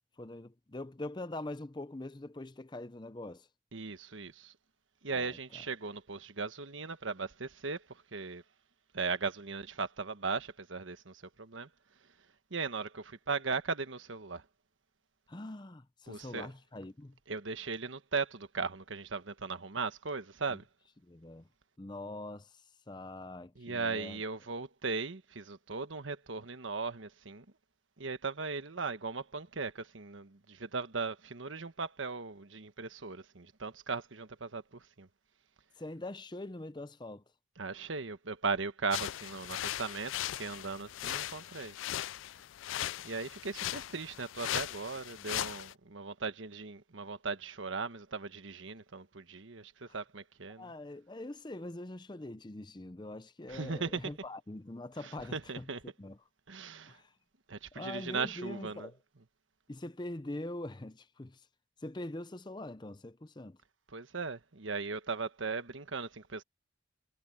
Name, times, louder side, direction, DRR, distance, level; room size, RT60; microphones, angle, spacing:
voice 1, 0.2-3.5 5.1-5.4 15.3-17.2 20.5-20.6 21.0-21.5 21.8-24.2 35.8-37.2 49.9-50.0 50.6-55.7 56.0-56.2 56.9-57.1 57.7-59.0 59.7-61.5 61.8-63.6, left 1 dB, 25° left, 0.6 m, -43 dB
voice 2, 3.7-4.5 5.0-8.4 8.9-11.7 12.5-14.4 16.1-16.5 17.3-20.6 23.6-27.4 28.0-35.1 37.6-41.8 43.0-50.7 53.5-54.1 55.0-55.8 56.5-57.0 57.5-58.9 63.9-66.4, right 4 dB, 80° right, 1.3 m, -38 dB
sound 1, 38.9-45.7, left 13 dB, 80° left, 0.3 m, -38 dB
head